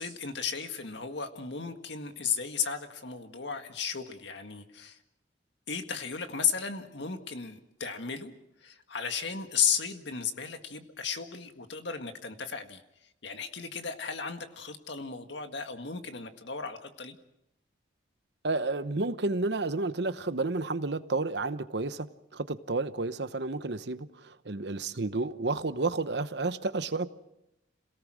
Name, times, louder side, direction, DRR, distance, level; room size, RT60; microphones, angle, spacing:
voice 1, 0.0-5.0 5.7-8.3 8.6-12.8 13.2-17.2, left 6 dB, 70° left, 7 dB, 1.8 m, -34 dB
voice 2, 18.4-22.1 22.3-27.1, right 3 dB, 60° right, 12 dB, 0.9 m, -31 dB
27.5 x 18.0 x 6.3 m, 0.84 s
head